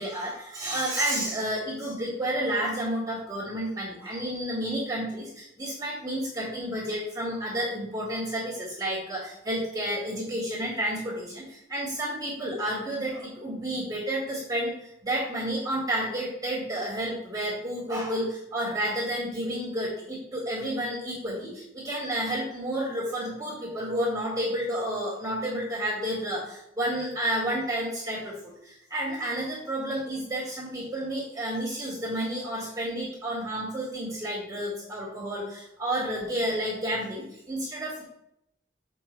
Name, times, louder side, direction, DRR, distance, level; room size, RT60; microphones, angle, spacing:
voice 1, 0.0-38.0, right 1 dB, 20° right, -7 dB, 1.9 m, -31 dB
7.4 x 5.4 x 3.3 m, 0.78 s
head